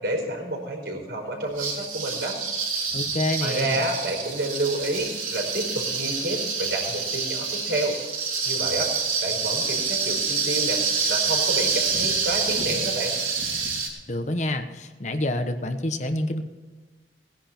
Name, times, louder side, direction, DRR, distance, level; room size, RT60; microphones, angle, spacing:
voice 1, 0.0-2.4 3.4-7.9 8.4-8.9 9.2-10.8 11.1-13.2, right 1 dB, 65° right, 1 dB, 4.8 m, -29 dB
sound 1, 1.6-13.9, right 5 dB, 45° right, 3.5 m, -27 dB
voice 2, 2.9-3.8 14.1-16.4, left 1 dB, 40° left, 7 dB, 1.1 m, -27 dB
19.0 x 10.5 x 4.5 m, 1.4 s
head